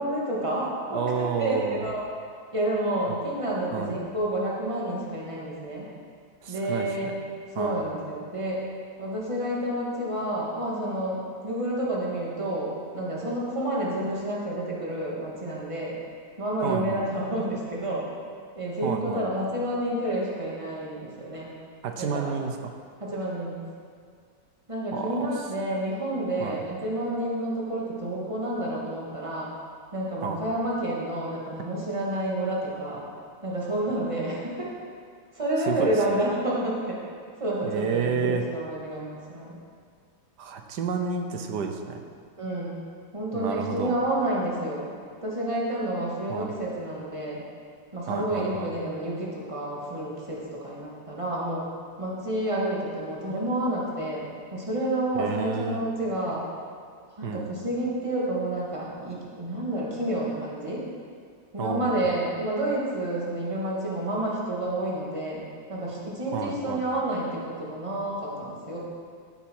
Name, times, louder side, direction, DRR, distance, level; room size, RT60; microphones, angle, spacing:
voice 1, 0.0-2.1 2.5-5.9 6.5-7.1 7.5-8.6 9.0-16.0 16.4-18.1 18.6-21.5 22.1-22.3 23.0-23.6 24.7-29.5 29.9-33.0 33.4-34.7 35.3-37.0 37.4-39.6 42.4-42.8 43.1-44.8 45.2-47.4 47.9-51.6 52.0-56.4 57.2-60.8 61.5-65.4 65.7-68.8, right 1 dB, 20° right, -5 dB, 2.2 m, -29 dB
voice 2, 0.9-1.8 3.7-3.9 6.4-7.1 7.6-7.8 16.6-17.1 18.8-19.3 21.8-22.7 24.9-25.3 26.4-26.6 30.2-30.4 35.7-36.2 37.6-38.4 40.4-42.0 43.3-44.0 46.3-46.5 48.1-48.7 55.2-55.8 57.2-57.5 61.6-62.0 66.3-66.8, right 6 dB, 85° right, 5 dB, 1.5 m, -30 dB
14.5 x 8.0 x 4.7 m, 2.1 s
omnidirectional pair, 1.7 m